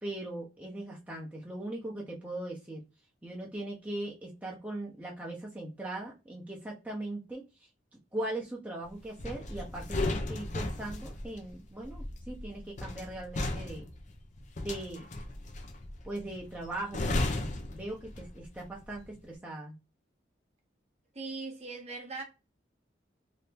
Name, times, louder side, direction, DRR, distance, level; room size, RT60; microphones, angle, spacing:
voice 1, 0.0-2.8 3.2-7.4 8.1-13.9 14.6-15.1 16.0-19.8, right 1 dB, 10° right, 0.7 m, -39 dB
sound 1, 9.2-18.5 18.8-19.1, left 2 dB, 40° left, 0.6 m, -35 dB
voice 2, 21.1-22.2, right 3 dB, 35° right, 1.0 m, -39 dB
2.8 x 2.7 x 3.4 m
head